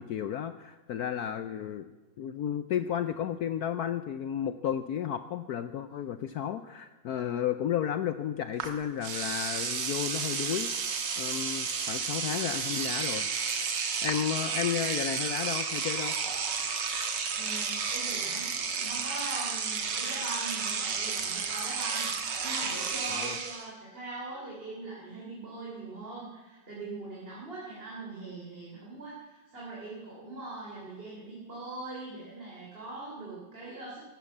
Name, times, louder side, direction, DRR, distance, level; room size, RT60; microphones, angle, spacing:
voice 1, 0.0-1.9 2.2-13.3 14.0-16.1 23.1-23.4, left 9 dB, 65° left, 12 dB, 1.0 m, -33 dB
Engine / Domestic sounds home sounds, 8.6-8.7 9.0-23.7, right 5 dB, 70° right, 2.1 m, -32 dB
voice 2, 17.4-34.1, right 2 dB, 30° right, -6 dB, 3.6 m, -42 dB
15.5 x 12.0 x 7.2 m, 1.2 s
omnidirectional pair, 2.0 m